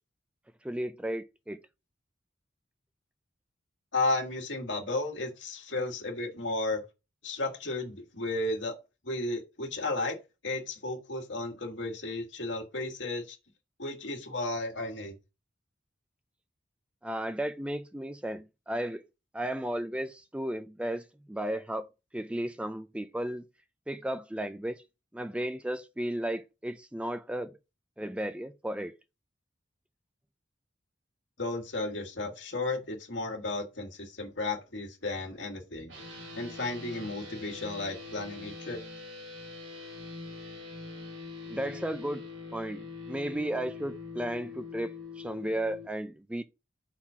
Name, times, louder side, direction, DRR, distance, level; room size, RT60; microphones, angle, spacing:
voice 1, 0.6-1.6 17.0-19.0 19.3-21.9 22.1-23.4 23.9-24.8 25.1-27.5 28.0-28.9 41.5-42.2 42.5-46.4, right 1 dB, 5° right, 0.4 m, -34 dB
voice 2, 3.9-6.8 7.2-8.8 9.0-10.2 10.4-13.4 13.8-15.1 31.4-35.9 36.4-38.8, left 2 dB, 70° left, 2.0 m, -33 dB
sound 1, 35.9-45.9, left 3 dB, 80° right, 2.7 m, -43 dB
5.9 x 4.3 x 5.6 m
head